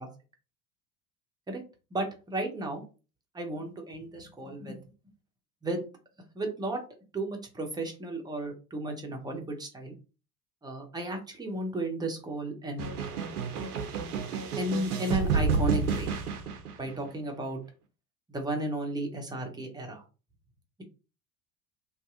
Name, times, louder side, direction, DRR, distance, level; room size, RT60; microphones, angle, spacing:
voice 1, 1.9-2.8 3.3-4.8 5.6-5.9 6.3-6.8 7.1-9.9 10.6-12.9 14.6-16.1 16.8-17.6 18.3-20.0, right 1 dB, 10° right, 2 dB, 0.7 m, -34 dB
sound 1, 12.8-17.1, right 5 dB, 75° right, 0.7 m, -30 dB
2.6 x 2.3 x 2.4 m, 0.33 s
figure-of-eight pair, 70°, 46 cm